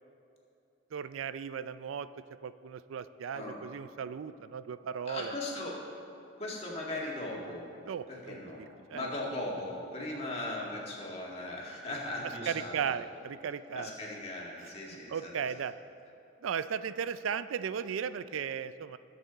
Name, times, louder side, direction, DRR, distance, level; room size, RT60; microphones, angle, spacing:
voice 1, 0.9-2.1 2.4-5.3 7.9-8.4 8.9-9.1 12.5-13.9 15.1-15.7 16.4-19.0, right 7 dB, 90° right, 14 dB, 0.4 m, -36 dB
voice 2, 5.1-5.9 6.4-7.7 8.1-13.0 13.7-15.5, left 1 dB, 30° left, -3 dB, 1.8 m, -38 dB
20.0 x 6.8 x 4.0 m, 2.8 s
head